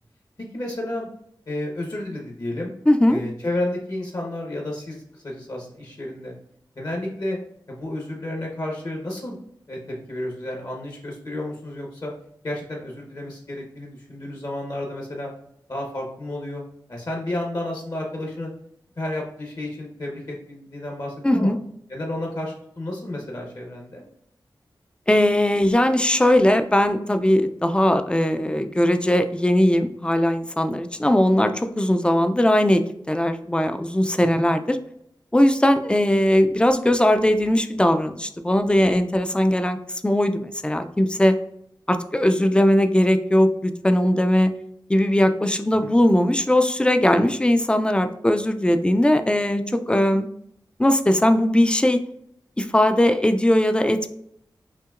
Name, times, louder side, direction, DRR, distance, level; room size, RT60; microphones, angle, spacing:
voice 1, 0.5-1.1 1.5-2.7 3.1-6.3 6.8-7.4 7.7-9.4 9.7-12.1 12.4-15.3 15.7-16.6 16.9-18.5 19.0-21.5 21.9-24.0 34.3-34.5 45.8-45.9, left 1 dB, 50° left, 0 dB, 1.1 m, -31 dB
voice 2, 2.9-3.2 21.2-21.6 25.1-34.8 35.3-39.8 40.0-41.4 41.9-44.5 44.9-50.3 50.8-52.0 52.6-54.1, left 1 dB, 10° left, 8 dB, 0.4 m, -19 dB
5.7 x 2.8 x 2.5 m, 0.73 s
wide cardioid pair, 65°, 8 cm